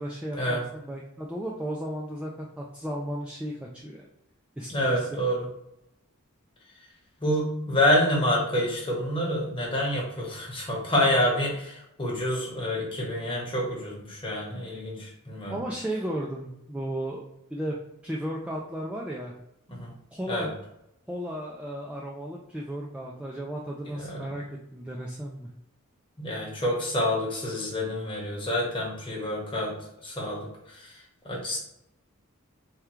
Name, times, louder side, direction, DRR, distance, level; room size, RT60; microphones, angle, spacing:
voice 1, 0.0-4.0 4.6-5.2 15.5-17.8 18.0-19.3 20.1-20.5 21.1-25.5, right 1 dB, 5° right, -3 dB, 0.3 m, -34 dB
voice 2, 4.7-5.5 7.2-15.6 19.7-19.9 20.3-20.5 23.9-24.3 26.2-29.7 30.0-30.9 31.2-31.6, left 1 dB, 25° left, -4 dB, 1.1 m, -27 dB
3.6 x 2.2 x 4.4 m, 0.82 s
head